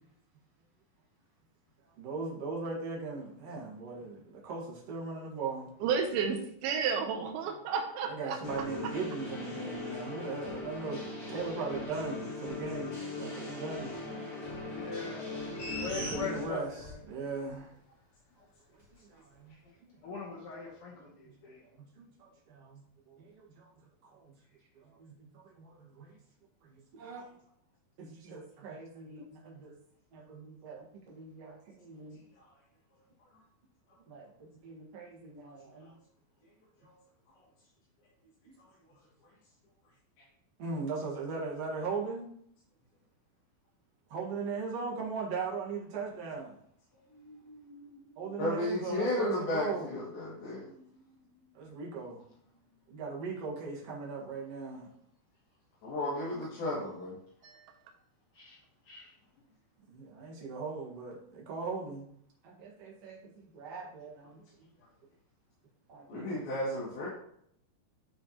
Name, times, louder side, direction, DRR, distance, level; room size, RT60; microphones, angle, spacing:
voice 1, 2.0-5.7 8.0-13.9 16.1-17.7 19.1-19.5 19.8-20.0 21.0-21.1 21.8-22.8 23.1-23.7 24.0-24.3 24.8-26.1 26.6-27.3 28.0-29.7 30.1-32.2 34.1-35.9 40.6-42.3 44.1-46.5 48.2-49.9 51.5-52.2 52.9-54.9 59.9-62.1 62.4-64.4 65.9-66.4, right 4 dB, 50° right, -2 dB, 2.2 m, -39 dB
voice 2, 5.8-8.6 57.4-57.7, right 6 dB, 80° right, 3 dB, 2.7 m, -32 dB
sound 1, 8.4-16.4, left 2 dB, 25° left, 2.6 m, -39 dB
voice 3, 14.7-15.4 15.8-17.0 20.0-21.6 47.1-48.4 50.3-51.1 58.3-58.6 58.9-59.1, left 4 dB, 90° left, -3 dB, 1.2 m, -43 dB
sound 2, 15.5-17.0 17.4-17.5, equal, 5° right, 2.2 m, -39 dB
voice 4, 48.4-50.7 55.8-57.2 66.1-67.1, left 1 dB, 70° left, -10 dB, 4.1 m, -33 dB
11.5 x 4.5 x 2.9 m, 0.67 s
omnidirectional pair, 4.5 m